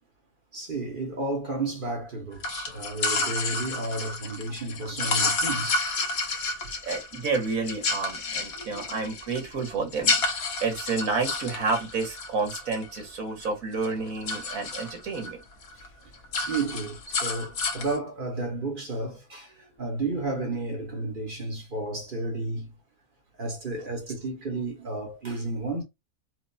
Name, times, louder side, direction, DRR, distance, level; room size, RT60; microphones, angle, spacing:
voice 1, 0.5-5.9 6.6-6.7 10.5-10.6 15.7-15.9 16.5-22.7 23.4-25.8, right 2 dB, 40° right, 1.2 m, -32 dB
sound 1, 2.4-13.5 13.8-15.3 15.6-15.9 16.1-18.0, left 3 dB, 75° left, 1.4 m, -30 dB
voice 2, 6.8-10.1 10.6-15.4, right 4 dB, 70° right, 1.8 m, -30 dB
4.4 x 2.1 x 2.6 m
omnidirectional pair, 1.5 m